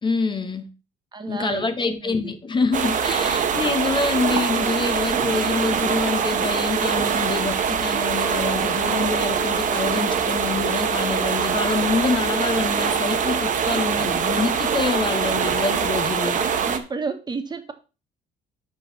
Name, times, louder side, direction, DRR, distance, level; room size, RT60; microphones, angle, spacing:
voice 1, 0.0-0.7 1.3-16.4, left 4 dB, 30° left, 1.0 m, -26 dB
voice 2, 1.1-2.4 16.6-17.7, right 4 dB, 25° right, 1.6 m, -32 dB
sound 1, 2.7-16.8, right 7 dB, 50° right, 1.4 m, -23 dB
sound 2, 8.2-13.2, left 13 dB, 70° left, 1.2 m, -39 dB
8.0 x 5.9 x 5.6 m
cardioid pair, 110°, 17 cm